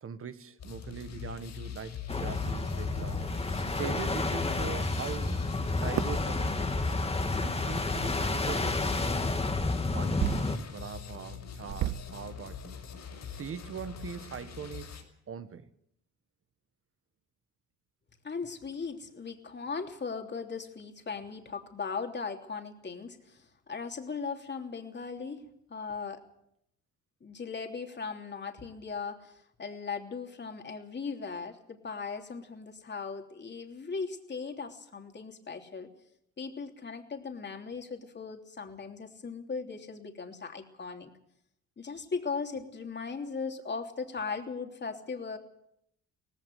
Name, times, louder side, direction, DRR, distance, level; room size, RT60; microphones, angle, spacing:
voice 1, 0.0-3.2 3.7-5.5 5.7-6.8 7.4-9.1 9.9-12.8 13.3-15.0 15.3-15.7, right 7 dB, 45° right, 11 dB, 1.7 m, -41 dB
sound 1, 0.6-15.0, left 8 dB, 65° left, 5.8 m, -43 dB
sound 2, 2.1-10.6, left 2 dB, 20° left, 1.8 m, -30 dB
sound 3, 6.0-6.2 7.4-7.5 8.8-9.0 10.2-10.7 11.1-11.2 11.7-12.2 12.8-12.9 13.2-13.3 13.6-13.9, right 12 dB, 65° right, 0.9 m, -33 dB
voice 2, 18.2-25.4 25.7-26.2 27.2-35.9 36.4-41.1 41.8-45.4, left 5 dB, 35° left, 4 dB, 3.1 m, -38 dB
18.5 x 16.0 x 9.4 m, 0.75 s
cardioid pair, 90°, 30 cm